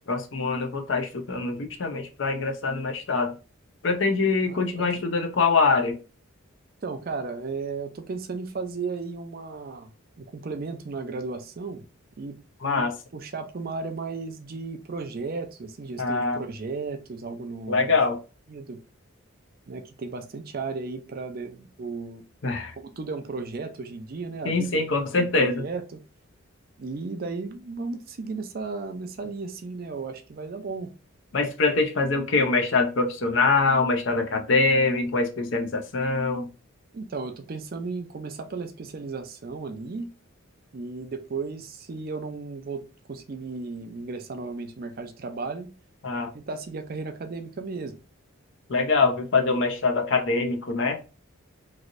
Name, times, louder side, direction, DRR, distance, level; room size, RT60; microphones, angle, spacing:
voice 1, 0.1-3.3 3.8-6.0 12.6-12.9 16.0-16.4 17.7-18.2 22.4-22.7 24.4-25.6 31.3-36.5 46.0-46.3 48.7-51.1, left 3 dB, 60° left, 0.6 m, -24 dB
voice 2, 4.5-4.9 6.8-9.9 10.2-11.8 12.2-12.9 13.1-18.0 18.5-18.8 19.7-22.2 22.8-24.8 25.1-26.0 26.8-30.9 36.9-40.1 40.7-45.7 46.3-48.0, right 4 dB, 45° right, 0.4 m, -35 dB
3.1 x 2.6 x 2.5 m
head